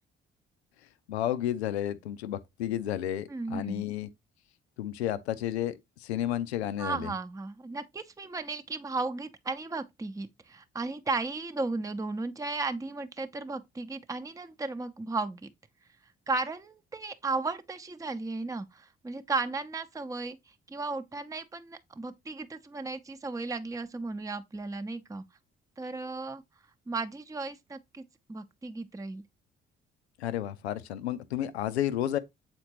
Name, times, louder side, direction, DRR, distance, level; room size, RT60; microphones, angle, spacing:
voice 1, 1.1-4.1 4.8-7.1 30.2-32.2, left 11 dB, 85° left, 0.5 m, -32 dB
voice 2, 3.3-3.9 6.8-15.5 16.3-25.2 25.8-26.4 26.9-28.0 28.3-29.2, right 3 dB, 10° right, 0.7 m, -35 dB
7.9 x 4.3 x 3.0 m
hypercardioid pair, 45°, 32 cm